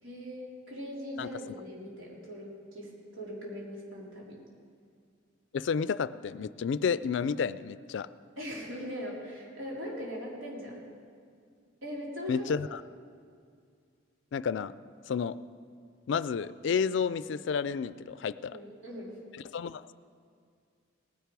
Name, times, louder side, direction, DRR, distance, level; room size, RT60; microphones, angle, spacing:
voice 1, 0.0-4.4 8.4-10.8 11.8-12.5 18.4-19.2, equal, 85° right, -4 dB, 3.6 m, -40 dB
voice 2, 5.5-8.1 12.3-12.8 14.3-14.7 15.1-15.4 16.1-18.6 19.5-19.9, left 6 dB, 65° left, 16 dB, 0.3 m, -31 dB
18.5 x 10.5 x 4.7 m, 2.2 s
head